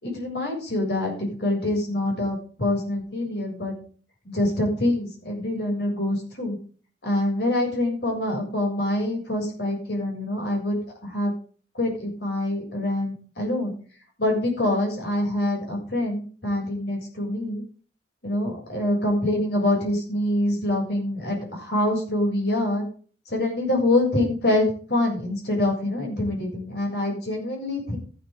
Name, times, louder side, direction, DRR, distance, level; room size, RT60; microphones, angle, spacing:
voice 1, 0.0-3.7 4.2-6.6 7.0-11.3 11.7-13.7 14.2-17.6 18.2-22.8 23.3-28.0, left 1 dB, 65° left, 0 dB, 7.5 m, -25 dB
14.5 x 10.0 x 3.9 m, 0.41 s
head